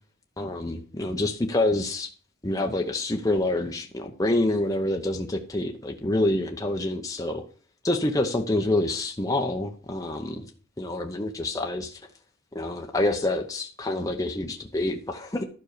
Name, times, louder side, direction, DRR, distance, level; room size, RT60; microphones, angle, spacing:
voice 1, 0.4-2.1 2.4-7.4 7.8-10.5 10.8-12.0 12.5-15.4, left 1 dB, 15° left, 0.9 m, -27 dB
12.0 x 5.4 x 6.7 m
head